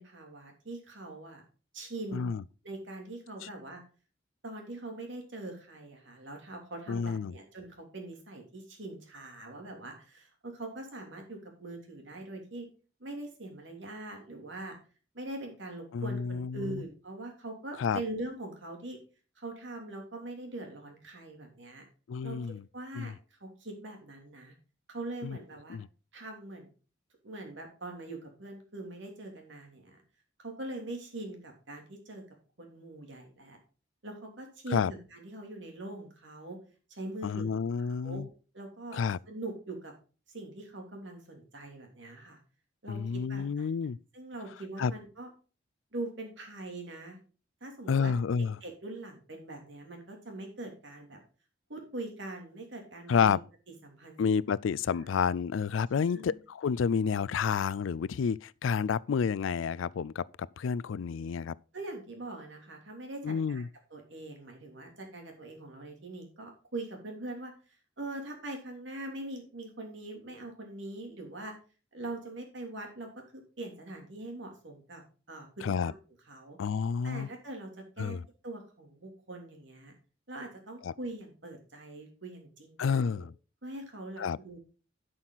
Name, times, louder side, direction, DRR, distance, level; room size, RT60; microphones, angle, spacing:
voice 1, 0.0-1.4 1.7-3.8 4.4-12.7 13.0-14.8 15.1-19.0 19.4-21.9 22.2-22.4 22.7-24.5 24.9-25.8 26.1-26.7 27.2-30.0 30.4-32.2 32.6-33.6 34.0-36.6 36.9-38.2 38.5-39.0 39.2-39.9 40.3-42.4 42.8-43.7 44.1-45.3 45.9-47.2 47.6-48.2 48.6-51.2 51.7-53.4 53.8-54.3 55.0-55.1 56.0-56.4 61.7-63.6 63.9-67.5 68.0-71.5 71.9-75.0 75.3-76.0 76.3-76.6 77.0-78.2 78.4-79.9 80.3-83.3 83.6-84.6, right 2 dB, 65° right, 3.1 m, -42 dB
voice 2, 6.9-7.3 15.9-16.8 17.8-18.0 22.1-22.6 23.0-23.1 25.2-25.4 25.7-25.9 34.7-34.9 37.2-38.3 38.9-39.2 42.9-44.0 44.8-44.9 47.9-48.6 53.1-53.4 54.2-61.6 63.2-63.7 75.6-75.9 76.6-77.3 78.0-78.2 80.8-80.9 82.8-83.3 84.2-84.4, left 6 dB, 80° left, 0.4 m, -30 dB
11.5 x 6.2 x 4.0 m
head